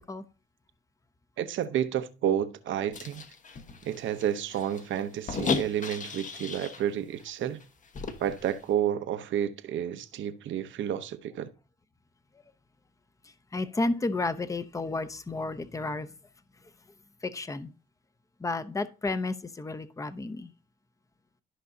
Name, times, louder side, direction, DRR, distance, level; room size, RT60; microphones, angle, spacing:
voice 1, 1.4-3.2 3.8-7.6 8.2-11.5, right 10 dB, 75° right, 0.8 m, -30 dB
sound 1, 2.9-6.9 7.2-7.3 7.6-8.6, left 5 dB, 40° left, 1.2 m, -35 dB
voice 2, 13.5-16.1 17.3-17.7 18.4-20.5, left 2 dB, 15° left, 0.7 m, -31 dB
13.0 x 5.5 x 2.7 m
cardioid pair, 90°, 20 cm